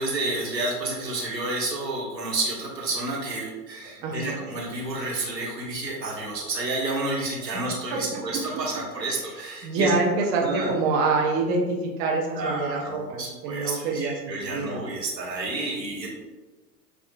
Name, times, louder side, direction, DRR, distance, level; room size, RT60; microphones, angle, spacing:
voice 1, 0.0-9.9 10.4-10.7 12.3-16.1, right 2 dB, 90° right, -4 dB, 1.3 m, -30 dB
voice 2, 4.0-4.4 7.9-8.4 9.6-14.8, right 3 dB, 20° right, -1 dB, 0.4 m, -26 dB
6.9 x 2.4 x 2.2 m, 1.3 s
figure-of-eight pair, 95°, 49 cm